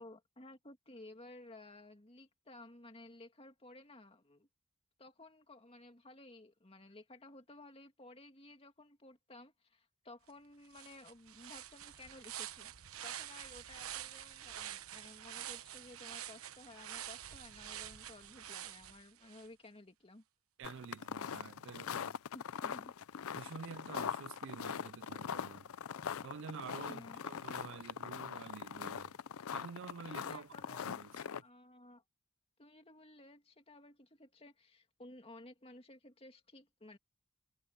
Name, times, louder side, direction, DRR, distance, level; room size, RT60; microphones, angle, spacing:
voice 1, 0.0-4.5 5.0-12.7 13.0-20.2 22.3-22.9 26.9-27.2 30.2-31.0 31.4-32.0 32.6-37.0, left 2 dB, 25° left, 2.3 m, -55 dB
sound 1, 10.3-10.4 10.7-19.5, right 11 dB, 85° right, 1.1 m, -47 dB
sound 2, 20.6-31.4, left 7 dB, 75° left, 0.5 m, -42 dB
voice 2, 20.6-22.2 23.3-25.7 26.2-29.2 29.5-31.5, right 6 dB, 60° right, 0.4 m, -49 dB
head